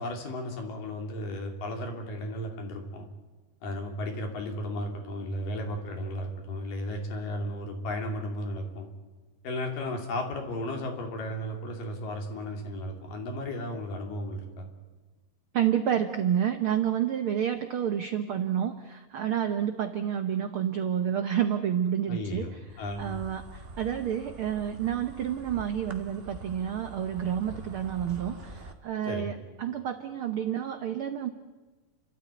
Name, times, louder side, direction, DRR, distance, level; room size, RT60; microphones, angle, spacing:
voice 1, 0.0-3.1 3.6-8.9 9.4-14.7 22.1-23.1 29.0-29.3, left 1 dB, 80° left, 2 dB, 4.6 m, -34 dB
voice 2, 15.5-22.5 23.0-31.3, right 9 dB, 80° right, 8 dB, 1.2 m, -29 dB
Insect, 22.7-28.7, right 2 dB, 45° right, 0.7 m, -45 dB
30.0 x 13.0 x 9.5 m, 1.2 s
omnidirectional pair, 3.8 m